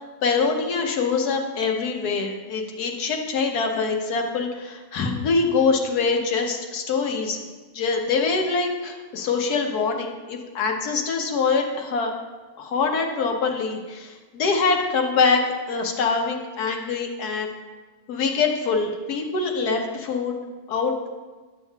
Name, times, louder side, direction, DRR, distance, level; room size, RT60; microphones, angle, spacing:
voice 1, 0.0-7.5 7.7-12.1 12.6-17.5 18.1-20.4 20.7-20.9, left 4 dB, 85° left, 2 dB, 1.5 m, -24 dB
11.5 x 7.2 x 2.3 m, 1.3 s
omnidirectional pair, 1.6 m